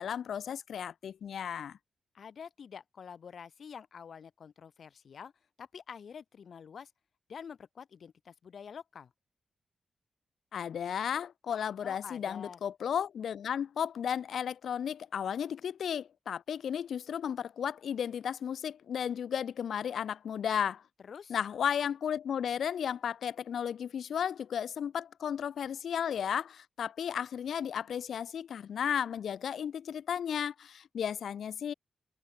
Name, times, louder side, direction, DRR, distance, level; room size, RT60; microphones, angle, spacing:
voice 1, 0.0-1.8 10.5-20.8 21.3-31.7, left 8 dB, 80° left, 2.0 m, -34 dB
voice 2, 2.1-5.3 5.6-6.9 7.3-9.1 11.8-12.6 21.0-21.4, left 7 dB, 55° left, 6.1 m, -47 dB
wide cardioid pair, 160°, 0 cm